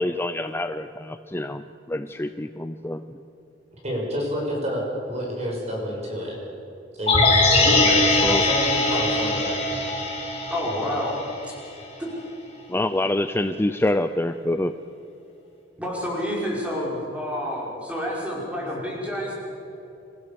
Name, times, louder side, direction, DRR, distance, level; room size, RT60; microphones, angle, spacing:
voice 1, 0.0-3.0 8.2-8.4 12.7-14.7, left 1 dB, 15° left, 9 dB, 0.5 m, -26 dB
voice 2, 3.8-6.4 7.0-9.6, equal, 35° right, -2 dB, 6.1 m, -29 dB
sound 1, 7.1-11.3 11.6-11.7, left 2 dB, 30° left, 6.8 m, -21 dB
voice 3, 10.5-11.2 11.5-11.6 12.0-12.1 15.8-19.3, equal, 5° right, -4 dB, 5.5 m, -29 dB
27.0 x 15.5 x 7.0 m, 2.9 s
head